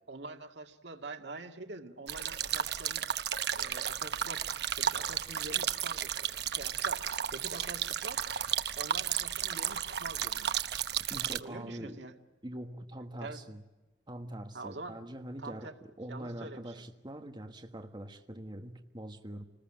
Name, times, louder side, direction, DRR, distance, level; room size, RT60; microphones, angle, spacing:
voice 1, 0.1-3.1 3.5-7.0 7.3-8.2 8.8-10.5 11.4-12.2 13.2-13.4 14.5-15.0 15.4-15.7 16.1-16.8, right 3 dB, 80° right, 2.1 m, -45 dB
sound 1, 2.1-11.4, right 9 dB, 65° right, 1.0 m, -33 dB
voice 2, 11.1-12.0 12.4-13.6 14.1-19.4, right 1 dB, 25° right, 1.5 m, -43 dB
28.0 x 20.0 x 8.8 m
head